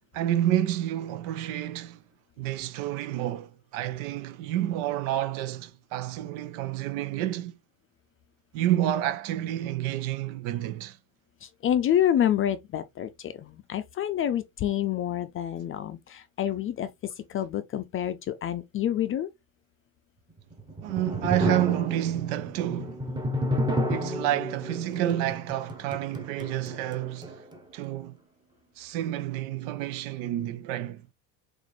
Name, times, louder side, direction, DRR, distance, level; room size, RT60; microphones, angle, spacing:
voice 1, 0.1-2.0 2.4-7.5 8.5-11.0 20.8-23.0 23.9-27.4 27.7-28.2 28.8-31.0, right 13 dB, 80° right, 0.8 m, -29 dB
voice 2, 11.4-19.3, left 10 dB, 35° left, 0.4 m, -28 dB
sound 1, 20.4-27.6, equal, 10° right, 0.9 m, -31 dB
6.5 x 2.6 x 3.1 m
cardioid pair, 125°, 41 cm